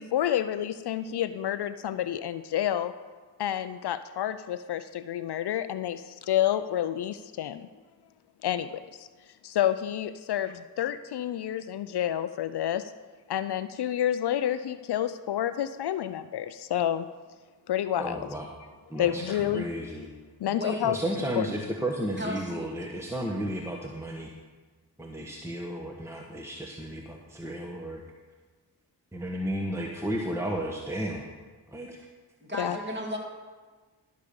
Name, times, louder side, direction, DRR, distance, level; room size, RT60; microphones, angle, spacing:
voice 1, 0.0-2.9 3.4-7.7 8.4-9.1 9.4-12.9 13.3-17.1 17.7-18.3 18.9-19.7 20.4-21.5 32.6-32.8, left 11 dB, 65° left, 12 dB, 0.5 m, -29 dB
voice 2, 18.0-18.5 18.9-20.1 20.8-24.3 25.0-28.0 29.1-31.2 31.7-32.0, right 1 dB, 5° right, 0 dB, 1.3 m, -33 dB
voice 3, 20.4-20.9 22.2-22.7 32.4-33.2, left 1 dB, 25° right, -1 dB, 3.0 m, -35 dB
13.0 x 5.2 x 6.9 m, 1.4 s
cardioid pair, 45°, 43 cm